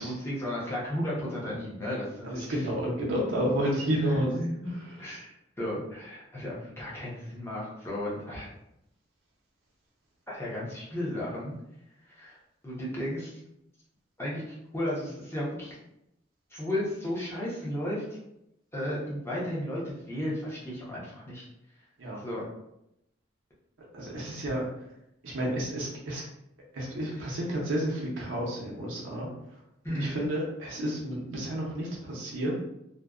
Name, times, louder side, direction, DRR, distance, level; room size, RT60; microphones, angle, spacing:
voice 1, 0.0-2.6 4.0-4.7 5.0-5.3 5.6-8.5 10.3-11.5 12.1-12.4 12.6-13.4 14.2-15.8 16.5-18.0 18.7-21.5 22.2-22.4 29.8-30.2, left 1 dB, 15° left, -7 dB, 0.7 m, -34 dB
voice 2, 2.2-4.3 4.7-5.0 22.0-22.2 23.8-24.6 25.2-26.3 26.7-29.3 29.9-32.5, equal, 80° right, -3 dB, 0.6 m, -31 dB
2.5 x 2.1 x 2.3 m, 0.82 s
head